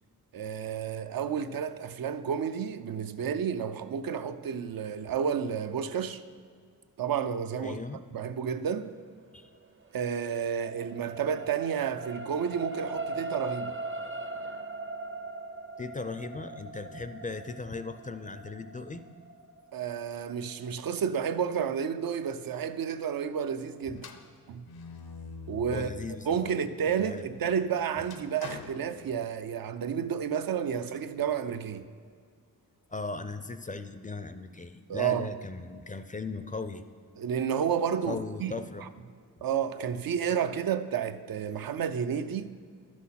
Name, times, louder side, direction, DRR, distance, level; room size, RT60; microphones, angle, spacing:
voice 1, 0.3-6.2 7.0-7.8 8.1-8.9 9.9-13.7 19.7-24.1 24.5-24.6 25.5-25.9 26.3-31.9 34.9-35.3 37.2-38.5 39.4-42.5, right 7 dB, 75° right, 0.5 m, -31 dB
voice 2, 7.6-8.0 9.3-9.5 15.8-19.1 25.7-26.5 26.8-27.3 32.9-36.8 38.0-38.9, left 3 dB, 25° left, 0.4 m, -38 dB
sound 1, 9.8-22.3 22.9-23.0, right 3 dB, 35° right, 0.6 m, -40 dB
sound 2, 24.0-26.4 26.8-29.7, left 5 dB, 80° left, 0.8 m, -46 dB
11.5 x 6.2 x 5.7 m
wide cardioid pair, 120°, 35 cm